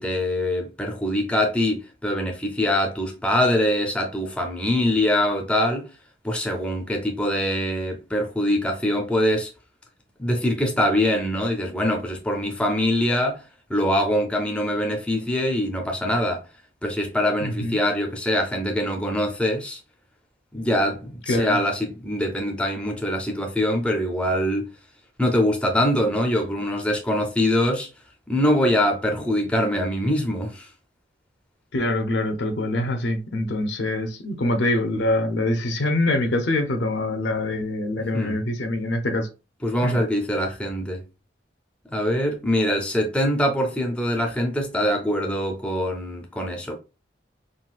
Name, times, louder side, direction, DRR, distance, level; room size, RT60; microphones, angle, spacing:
voice 1, 0.0-5.9 6.2-9.5 10.2-13.4 13.7-16.5 16.8-19.8 20.5-24.7 25.2-27.9 28.3-30.7 38.1-38.4 39.6-41.0 41.9-46.8, left 1 dB, 5° left, 0.4 m, -23 dB
voice 2, 17.4-17.8 21.3-21.6 31.7-39.3 39.8-40.0, left 1 dB, 70° left, 0.6 m, -24 dB
3.8 x 2.3 x 2.4 m
head